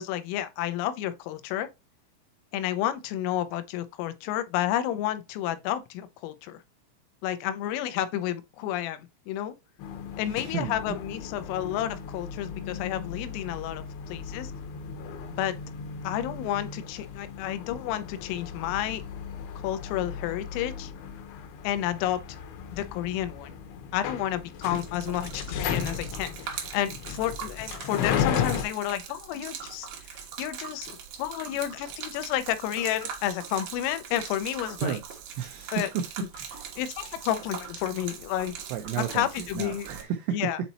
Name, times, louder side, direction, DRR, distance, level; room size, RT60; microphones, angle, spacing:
voice 1, 0.0-1.7 2.5-6.6 7.2-9.5 10.2-14.5 15.3-15.5 16.0-19.0 19.6-20.9 21.6-22.2 22.7-23.5 23.9-35.0 35.7-35.9 36.8-38.6 39.0-39.9 40.3-40.6, left 12 dB, 90° left, 3.4 m, -31 dB
sound 1, 9.8-28.7, left 7 dB, 75° left, 3.1 m, -35 dB
voice 2, 10.2-11.0 34.8-35.0 35.4-36.3 38.7-40.5, right 8 dB, 90° right, 2.5 m, -32 dB
Gurgling / Liquid, 24.6-40.0, right 7 dB, 75° right, 2.1 m, -41 dB
7.9 x 4.1 x 2.9 m
omnidirectional pair, 5.8 m